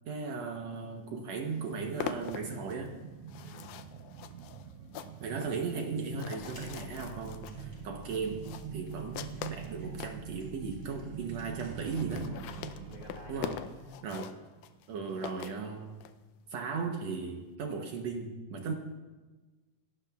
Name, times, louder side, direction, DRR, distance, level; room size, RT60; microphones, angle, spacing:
voice 1, 0.1-3.0 5.2-8.4 8.7-12.3 13.3-13.6 14.0-14.3 14.9-16.0 16.5-18.7, right 5 dB, 70° right, 2 dB, 2.0 m, -37 dB
sound 1, 1.0-1.1 1.4-10.2 10.8-10.9 11.1-11.2 11.4-11.5 11.8-16.1, left 10 dB, 90° left, 2.1 m, -43 dB
sound 2, 1.6-14.8 15.1-15.2, right 9 dB, 90° right, 1.4 m, -45 dB
voice 2, 3.4-3.8 12.1-13.6, left 1 dB, 35° left, -1 dB, 2.6 m, -51 dB
sound 3, 6.4-13.7, left 5 dB, 20° right, 5.2 m, -52 dB
24.0 x 12.0 x 2.3 m, 1.3 s
omnidirectional pair, 3.4 m